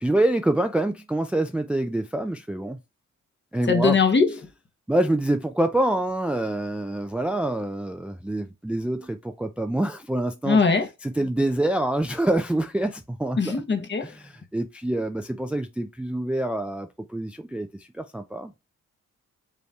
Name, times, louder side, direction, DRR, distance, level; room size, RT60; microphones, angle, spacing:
voice 1, 0.0-2.8 3.5-4.0 4.9-10.6 11.0-13.6 14.0-18.5, right 1 dB, 5° right, 0.4 m, -26 dB
voice 2, 3.7-4.4 10.4-10.9 13.4-14.1, left 4 dB, 35° left, 1.1 m, -21 dB
5.1 x 3.2 x 2.4 m
cardioid pair, 65°, 31 cm